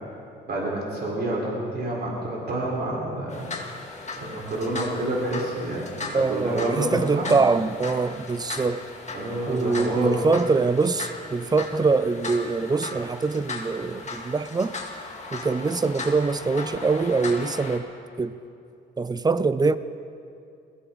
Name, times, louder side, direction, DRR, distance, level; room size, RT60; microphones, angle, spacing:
voice 1, 0.5-3.5 4.2-7.3 9.1-10.1, right 1 dB, 55° right, -3 dB, 4.3 m, -28 dB
sound 1, 3.3-17.8, left 3 dB, 35° left, 2.0 m, -37 dB
voice 2, 6.1-8.8 9.5-14.8 15.3-17.9 18.2-18.4 19.0-19.8, right 4 dB, 20° right, 15 dB, 0.5 m, -24 dB
21.0 x 15.5 x 4.0 m, 2.5 s
cardioid pair, 90°, 20 cm